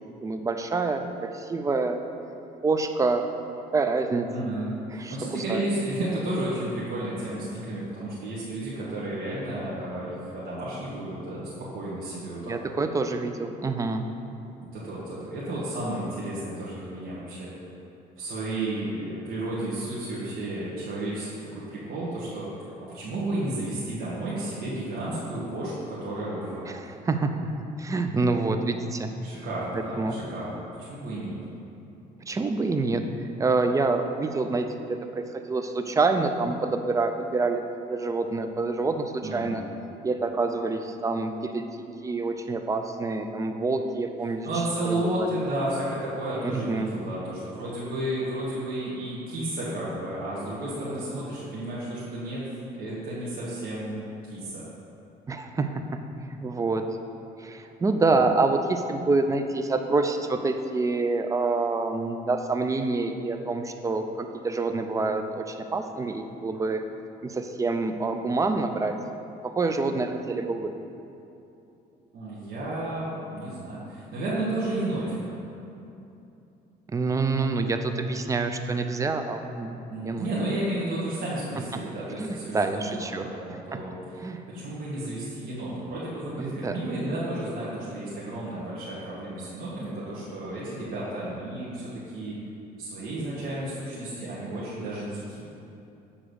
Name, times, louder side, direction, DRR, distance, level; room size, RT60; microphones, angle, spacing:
voice 1, 0.2-2.0 2.6-3.3 3.7-4.3 4.9-5.7 12.5-14.0 26.7-27.3 27.8-29.1 30.0-30.2 32.3-33.0 33.4-37.6 37.9-39.6 40.0-44.5 44.8-45.3 46.5-46.9 55.3-55.8 56.4-56.8 57.4-66.8 67.2-69.0 69.6-70.7 76.9-80.3 81.7-81.8 82.2-83.3 83.7-83.8 84.2-84.4 86.4-86.8, right 3 dB, 20° right, 6 dB, 0.5 m, -27 dB
voice 2, 4.3-12.8 14.7-17.5 18.2-22.5 22.8-26.7 29.2-30.6 30.9-31.4 39.2-39.6 44.4-52.5 52.8-54.0 54.3-54.6 72.1-75.4 79.9-83.9 84.5-92.4 92.8-95.5, right 1 dB, 60° right, -9 dB, 1.7 m, -32 dB
7.0 x 3.6 x 6.3 m, 2.8 s
cardioid pair, 110°, 17 cm